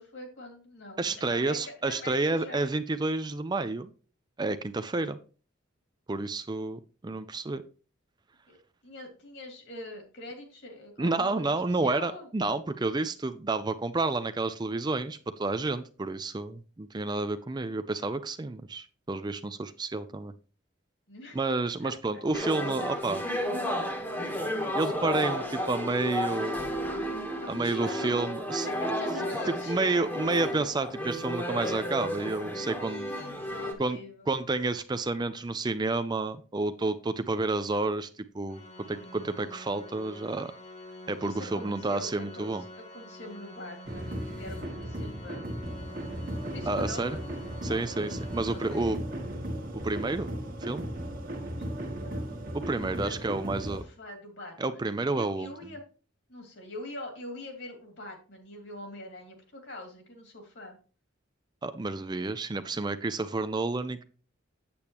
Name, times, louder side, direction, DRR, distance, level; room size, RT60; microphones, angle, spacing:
voice 1, 0.0-2.6 8.5-8.6 8.8-12.3 21.1-21.4 21.8-22.5 27.4-28.1 28.6-30.0 32.8-34.3 41.2-45.6 46.4-47.3 47.6-49.0 51.7-54.8 55.1-55.8 56.3-60.8, left 1 dB, 65° left, 3 dB, 2.6 m, -44 dB
voice 2, 1.0-3.9 4.4-5.2 6.1-7.6 11.0-20.3 21.3-23.2 24.7-26.6 27.5-28.7 29.7-33.1 33.8-34.0 34.3-38.1 38.3-38.6 38.9-40.5 41.1-42.6 46.7-47.2 47.6-49.0 49.7-50.3 50.6-50.9 52.5-53.8 54.6-55.5 61.6-64.0, right 3 dB, 20° right, 11 dB, 0.4 m, -30 dB
sound 1, 22.3-33.7, equal, 10° left, 1.2 m, -32 dB
Organ, 38.5-49.3, equal, 35° left, 1.5 m, -47 dB
sound 2, 43.9-53.8, right 1 dB, 45° right, 1.5 m, -36 dB
8.6 x 8.4 x 3.0 m, 0.37 s
head